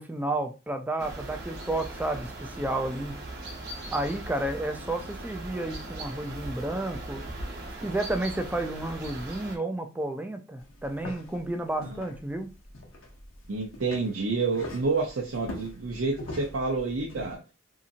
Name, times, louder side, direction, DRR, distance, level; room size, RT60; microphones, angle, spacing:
voice 1, 0.0-3.2 3.7-7.3 7.8-12.5, right 1 dB, 10° right, 0.3 m, -31 dB
sound 1, 1.0-9.6, right 1 dB, 55° right, 1.0 m, -39 dB
sound 2, 10.6-17.3, left 1 dB, 90° left, 0.9 m, -43 dB
voice 2, 13.5-17.4, right 3 dB, 90° right, 0.6 m, -29 dB
2.8 x 2.6 x 2.4 m
head